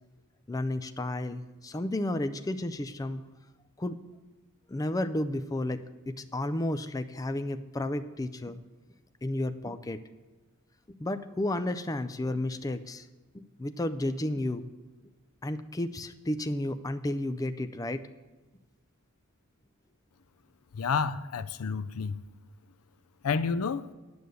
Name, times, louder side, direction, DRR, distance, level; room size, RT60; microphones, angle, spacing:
voice 1, 0.5-3.2 3.8-4.0 4.7-8.6 9.2-10.0 10.9-13.1 13.3-14.7 15.4-18.1, left 1 dB, 15° left, 0.4 m, -32 dB
voice 2, 20.7-22.2 23.2-23.8, left 5 dB, 85° left, 0.5 m, -29 dB
9.6 x 7.8 x 6.8 m
head